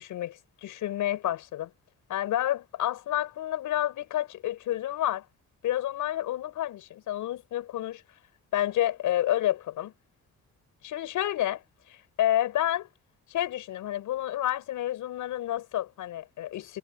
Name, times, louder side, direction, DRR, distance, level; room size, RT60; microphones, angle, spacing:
voice 1, 0.0-1.7 2.1-5.3 5.6-8.0 8.5-9.9 10.8-11.6 11.9-12.9 13.3-16.8, left 13 dB, 80° left, 6.8 m, -29 dB
cardioid pair, 90°, 30 cm